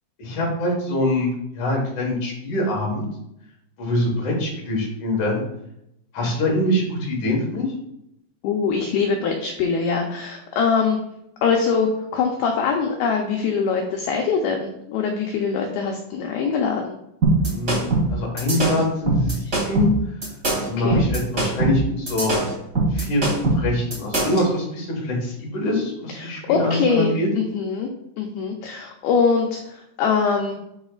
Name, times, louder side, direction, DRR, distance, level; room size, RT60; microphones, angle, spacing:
voice 1, 0.2-3.1 3.8-5.4 6.1-7.7 17.5-19.9 20.7-22.3 22.9-27.3, left 1 dB, 55° left, -2 dB, 2.3 m, -24 dB
voice 2, 8.4-11.0 11.4-17.0 20.8-21.0 26.2-27.9 28.2-30.6, left 5 dB, 90° left, 1 dB, 2.1 m, -23 dB
sound 1, 17.2-24.5, right 3 dB, 30° right, 1.6 m, -22 dB
12.0 x 4.3 x 2.4 m, 0.79 s
omnidirectional pair, 5.3 m